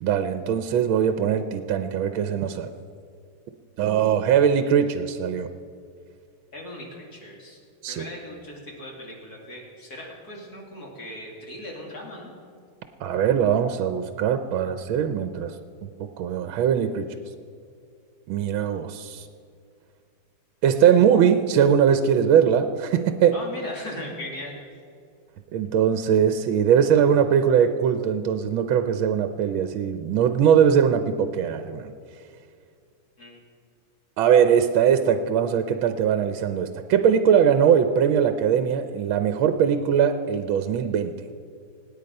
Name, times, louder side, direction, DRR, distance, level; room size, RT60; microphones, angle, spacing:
voice 1, 0.0-2.7 3.8-5.5 7.8-8.0 13.0-15.5 15.8-17.1 18.3-19.3 20.6-23.3 25.5-31.9 34.2-41.1, right 8 dB, 80° right, 9 dB, 1.5 m, -21 dB
voice 2, 6.5-7.6 7.9-12.4 23.3-24.6 33.2-33.4, left 1 dB, 50° left, -1 dB, 3.2 m, -38 dB
25.5 x 9.6 x 5.3 m, 2.3 s
omnidirectional pair, 2.2 m